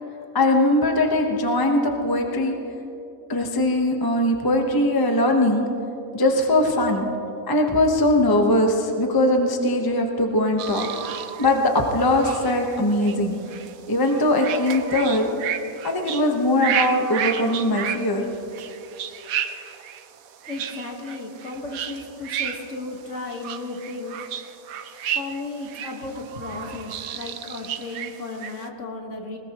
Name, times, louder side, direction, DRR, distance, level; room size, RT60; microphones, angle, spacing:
voice 1, 0.3-2.6 3.3-5.6 6.1-7.1 7.5-10.9 11.4-13.4 13.9-15.3 15.8-18.3, left 1 dB, 15° left, 2 dB, 0.9 m, -21 dB
sound 1, 10.6-28.7, right 9 dB, 70° right, 1.1 m, -32 dB
voice 2, 20.5-24.2 25.1-29.4, left 2 dB, 55° left, 1 dB, 1.8 m, -34 dB
20.5 x 20.0 x 3.0 m, 2.9 s
omnidirectional pair, 1.6 m